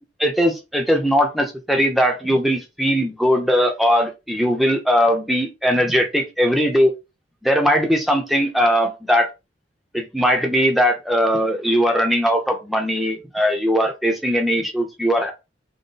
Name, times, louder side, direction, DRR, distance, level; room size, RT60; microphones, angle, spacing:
voice 1, 0.2-6.9 7.4-9.3 9.9-15.3, equal, ahead, 2 dB, 0.7 m, -19 dB
3.9 x 2.2 x 3.9 m, 0.26 s
head